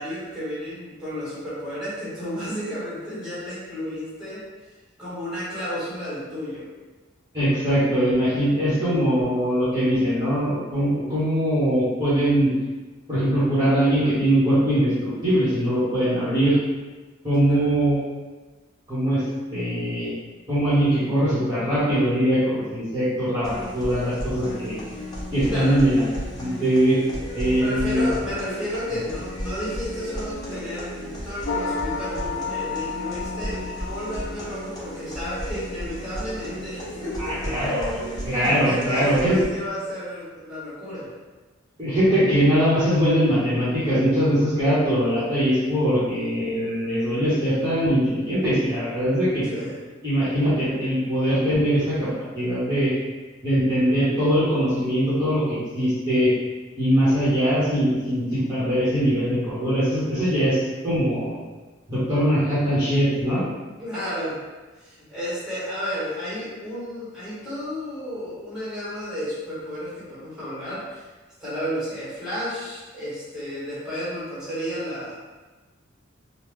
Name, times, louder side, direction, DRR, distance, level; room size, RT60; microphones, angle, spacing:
voice 1, 0.0-4.4 5.0-6.7 17.5-17.7 25.4-25.8 27.6-30.9 31.2-41.1 49.4-49.8 63.8-64.4 64.8-71.1 71.4-75.2, equal, 5° right, -11 dB, 1.4 m, -32 dB
voice 2, 7.3-12.5 13.1-16.6 17.2-18.0 18.9-19.2 19.5-20.1 20.5-24.8 25.3-26.0 26.3-27.0 27.3-28.0 37.2-39.4 41.8-49.6 50.0-52.1 52.3-52.9 53.4-56.3 56.8-61.4 61.9-63.4, equal, 20° right, -13 dB, 1.1 m, -21 dB
sound 1, 23.4-39.4, equal, 20° left, 0.7 m, -34 dB
sound 2, 31.4-34.8, left 4 dB, 65° left, 0.4 m, -31 dB
3.7 x 2.3 x 3.2 m, 1.2 s
head